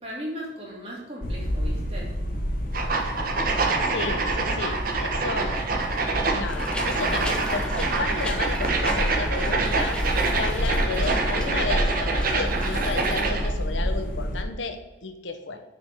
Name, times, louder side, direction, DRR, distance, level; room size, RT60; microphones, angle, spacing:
voice 1, 0.0-2.1, equal, 30° right, -4 dB, 2.6 m, -37 dB
sound 1, 1.2-14.4, equal, 50° left, 1.1 m, -29 dB
sound 2, 2.7-13.5, right 3 dB, 50° right, 1.2 m, -26 dB
voice 2, 3.8-5.7 6.3-10.0 10.3-15.6, left 3 dB, 75° left, 7 dB, 0.9 m, -33 dB
sound 3, 6.5-13.2, left 1 dB, 5° left, 0.9 m, -37 dB
6.7 x 5.3 x 6.0 m, 1.1 s
head